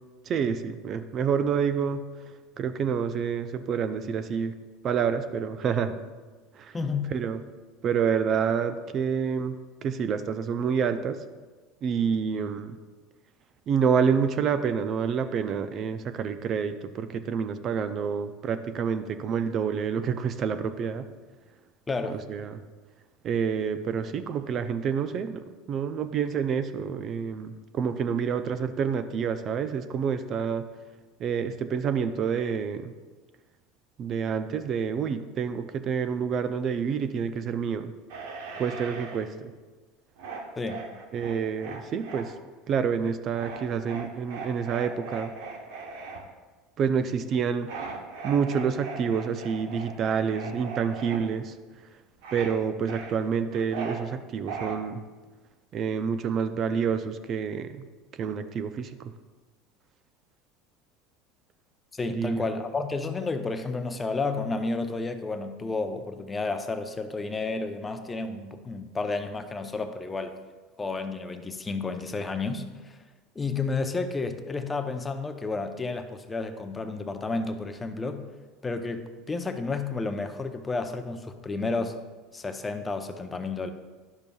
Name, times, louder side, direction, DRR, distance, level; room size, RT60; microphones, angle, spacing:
voice 1, 0.3-2.1 2.6-4.6 4.8-6.0 6.6-6.8 7.1-7.4 7.8-11.2 11.8-12.8 13.7-21.1 22.1-22.5 23.2-30.7 31.2-32.9 34.0-37.9 38.6-39.5 41.1-42.3 42.7-45.3 46.8-47.7 48.2-51.5 52.3-55.0 55.7-57.9 58.2-59.1 62.1-62.5, right 6 dB, 45° right, 11 dB, 0.4 m, -28 dB
voice 2, 6.7-7.1 21.9-22.2 40.6-40.8 61.9-70.4 70.8-73.0 73.4-78.3 78.6-82.0 82.3-83.7, left 3 dB, 20° left, 7 dB, 0.6 m, -31 dB
sound 1, 38.1-39.3 40.2-42.2 43.3-46.2 47.7-51.2 52.2-52.6 52.9-54.0 54.5-54.7, right 4 dB, 75° right, 0.9 m, -39 dB
10.5 x 6.8 x 2.3 m, 1.3 s
supercardioid pair, 95°, 0 cm